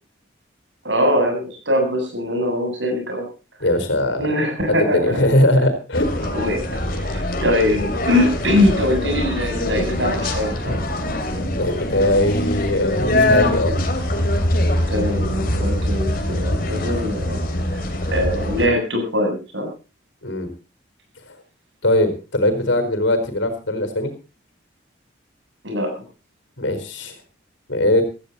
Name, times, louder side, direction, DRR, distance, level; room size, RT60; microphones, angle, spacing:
voice 1, 0.8-3.2 4.2-5.2 6.3-10.8 14.9-17.4 17.7-17.8 18.1-19.7 25.6-25.9, left 1 dB, 75° right, 3 dB, 7.9 m, -22 dB
voice 2, 3.6-4.3 4.7-6.1 10.6-10.7 11.5-13.8 20.2-20.5 21.3-21.4 21.8-24.1 26.6-27.1 27.7-28.0, left 1 dB, 80° left, 9 dB, 4.3 m, -20 dB
sound 1, 5.9-18.7, left 1 dB, 45° left, 3.0 m, -23 dB
17.0 x 15.0 x 4.1 m, 0.32 s
head